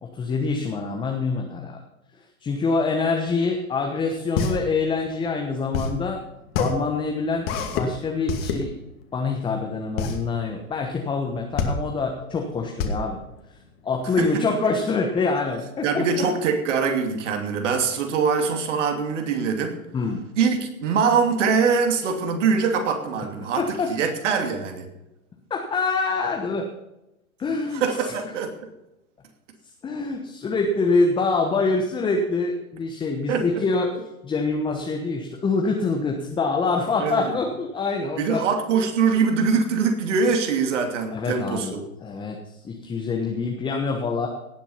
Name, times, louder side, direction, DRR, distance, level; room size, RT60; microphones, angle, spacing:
voice 1, 0.0-1.8 2.2-6.2 6.6-8.7 9.1-13.2 13.8-16.3 19.9-20.2 23.6-23.9 25.5-26.7 27.4-28.1 29.8-33.9 34.2-38.4 41.1-44.3, left 4 dB, 10° left, 2 dB, 1.2 m, -25 dB
sound 1, 3.9-14.2, left 5 dB, 40° left, 2.5 m, -28 dB
voice 2, 15.8-19.8 20.4-24.9 27.7-28.5 33.3-33.6 37.0-37.3 38.2-41.8, right 5 dB, 55° right, 5 dB, 3.0 m, -23 dB
18.0 x 7.3 x 5.7 m, 0.94 s
hypercardioid pair, 120°, 43 cm